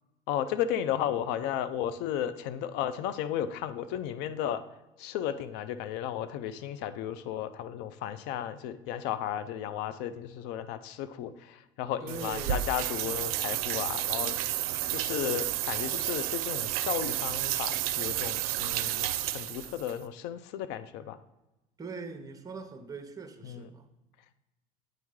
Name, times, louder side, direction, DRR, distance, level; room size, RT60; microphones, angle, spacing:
voice 1, 0.3-4.6 5.0-14.4 14.9-21.2 23.4-23.7, left 10 dB, 70° left, 13 dB, 0.4 m, -34 dB
voice 2, 12.0-12.7 21.8-23.9, right 4 dB, 20° right, 7 dB, 0.7 m, -42 dB
sound 1, 12.1-19.9, right 13 dB, 85° right, 0.4 m, -31 dB
9.0 x 3.1 x 3.6 m, 0.99 s
supercardioid pair, 95°, 19 cm